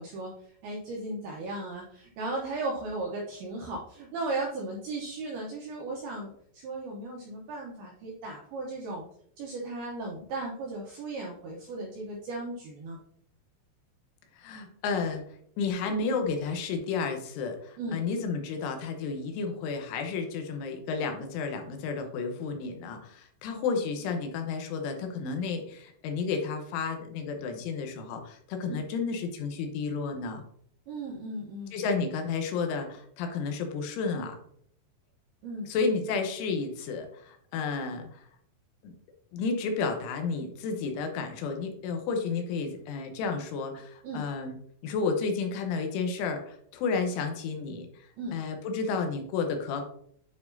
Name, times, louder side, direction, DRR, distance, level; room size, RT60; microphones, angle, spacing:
voice 1, 0.0-9.0 9.4-13.0 17.8-18.0 23.5-23.6 28.7-28.8 30.9-31.7 35.4-35.7 44.0-44.2 48.2-48.4, right 2 dB, 85° right, -2 dB, 2.2 m, -36 dB
voice 2, 14.4-15.2 15.6-30.4 31.7-34.4 35.7-38.2 38.8-38.9 39.3-44.6 44.8-47.9 48.3-49.8, left 4 dB, 85° left, 5 dB, 3.3 m, -31 dB
9.5 x 4.6 x 2.7 m, 0.65 s
omnidirectional pair, 5.7 m